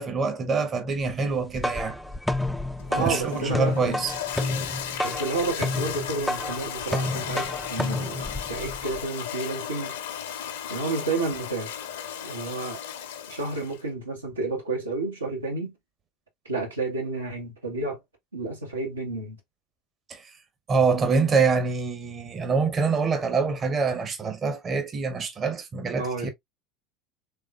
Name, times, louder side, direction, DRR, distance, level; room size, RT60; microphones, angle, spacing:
voice 1, 0.0-2.0 2.9-4.1 20.1-20.3 20.7-26.3, right 4 dB, 30° right, 0.8 m, -25 dB
sound 1, 1.3-9.0, left 1 dB, 5° left, 0.4 m, -30 dB
Toilet flush, 2.8-13.8, left 9 dB, 70° left, 0.7 m, -35 dB
voice 2, 2.9-4.0 5.0-10.0 10.7-11.7 12.2-12.8 13.3-15.7 16.4-18.0 18.3-19.4 26.0-26.3, right 3 dB, 85° right, 1.4 m, -31 dB
3.5 x 3.4 x 2.4 m
figure-of-eight pair, 75°, 0 cm